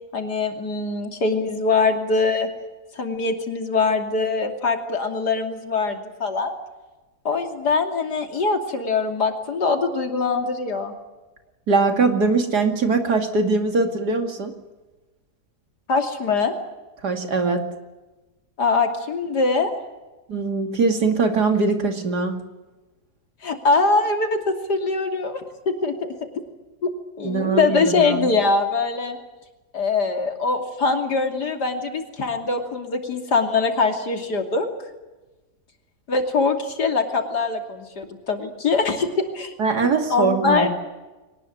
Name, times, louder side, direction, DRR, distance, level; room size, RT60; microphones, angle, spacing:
voice 1, 0.1-2.5 2.9-6.5 7.2-10.9 15.9-16.5 18.6-19.7 23.4-25.4 25.7-26.1 27.2-29.2 29.7-34.7 36.1-39.5 40.1-40.7, left 4 dB, 80° left, 4 dB, 3.3 m, -22 dB
voice 2, 11.7-14.5 17.0-17.6 20.3-22.4 27.2-28.3 39.6-40.7, right 4 dB, 75° right, 5 dB, 3.0 m, -21 dB
23.0 x 19.5 x 9.3 m, 1.1 s
omnidirectional pair, 1.7 m